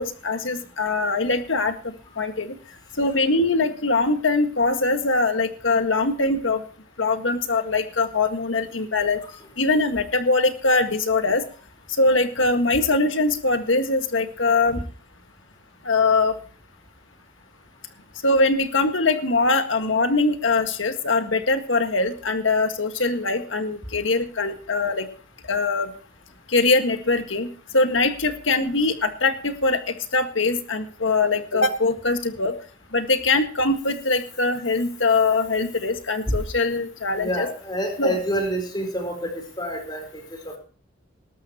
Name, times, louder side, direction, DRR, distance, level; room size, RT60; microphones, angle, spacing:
voice 1, 0.0-2.6 3.0-6.6 7.0-9.2 9.6-11.4 12.0-14.8 15.8-16.4 18.2-25.1 25.5-25.9 26.5-32.6 32.9-37.5 38.0-38.1, left 3 dB, 70° left, 7 dB, 1.8 m, -22 dB
voice 2, 37.2-40.6, equal, 20° left, 4 dB, 4.2 m, -28 dB
19.5 x 13.0 x 3.0 m, 0.40 s
head